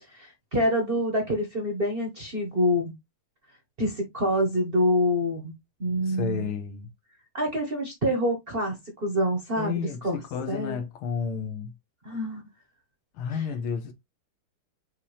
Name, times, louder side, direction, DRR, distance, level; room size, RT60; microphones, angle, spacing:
voice 1, 0.1-2.9 3.8-5.5 5.8-6.5 7.3-10.2 10.5-10.8 12.0-12.4 13.3-13.4, equal, 35° right, 0.9 m, -26 dB
voice 2, 6.1-6.9 9.6-11.7 13.2-13.9, left 6 dB, 80° left, 1.8 m, -32 dB
5.7 x 2.8 x 3.2 m
omnidirectional pair, 2.4 m